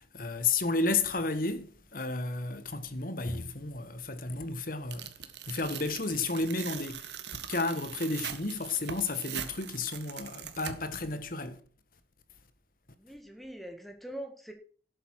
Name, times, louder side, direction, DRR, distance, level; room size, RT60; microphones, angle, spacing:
voice 1, 0.0-5.1 5.5-11.6, left 3 dB, 50° left, 1.5 m, -32 dB
Tearing, 4.9-11.0, right 8 dB, 75° right, 1.5 m, -41 dB
voice 2, 13.0-14.5, right 1 dB, ahead, 1.9 m, -43 dB
12.5 x 7.9 x 6.3 m
head